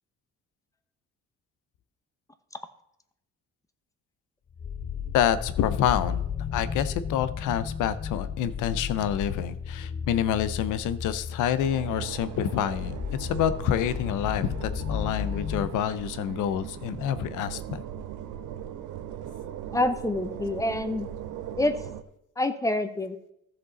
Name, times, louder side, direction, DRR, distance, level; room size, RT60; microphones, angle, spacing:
sound 1, 4.5-15.7, left 7 dB, 30° left, 0.6 m, -34 dB
voice 1, 5.1-6.2 6.5-17.8, left 9 dB, 90° left, 14 dB, 0.7 m, -27 dB
sound 2, 11.6-22.0, right 10 dB, 75° right, 0.7 m, -39 dB
voice 2, 19.7-21.1 21.6-21.8 22.4-23.2, left 1 dB, 10° left, 9 dB, 0.9 m, -27 dB
14.5 x 5.3 x 4.0 m, 0.80 s
cardioid pair, 90°, 30 cm